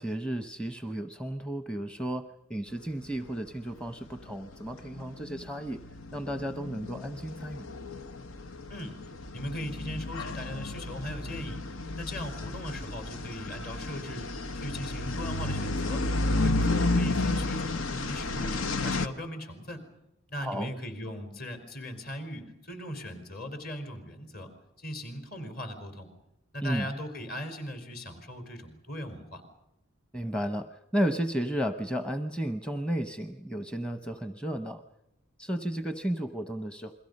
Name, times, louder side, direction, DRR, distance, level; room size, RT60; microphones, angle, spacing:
voice 1, 0.0-5.8 6.1-7.7 20.4-20.7 26.6-26.9 30.1-34.8 35.4-36.9, right 1 dB, 5° left, 8 dB, 0.9 m, -33 dB
sound 1, 3.6-3.7 3.9-19.1, left 2 dB, 80° left, 1.2 m, -32 dB
voice 2, 9.3-11.6 12.0-14.3 14.5-16.0 16.4-19.8 20.3-24.5 24.8-26.1 26.5-29.4, equal, 45° left, 7 dB, 4.5 m, -38 dB
29.5 x 22.5 x 5.4 m, 0.86 s
head